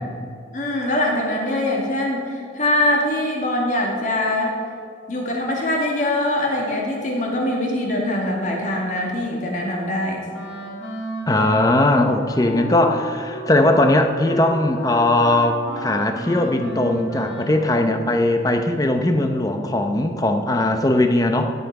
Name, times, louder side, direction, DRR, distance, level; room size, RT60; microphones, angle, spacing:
voice 1, 0.5-4.6 5.1-10.2, left 1 dB, 45° left, -1 dB, 2.2 m, -23 dB
Wind instrument woodwind instrument, 10.3-17.8, right 1 dB, 65° left, 2.6 m, -33 dB
voice 2, 11.3-21.5, left 1 dB, 20° left, 5 dB, 0.7 m, -19 dB
16.0 x 8.0 x 4.8 m, 2.4 s
head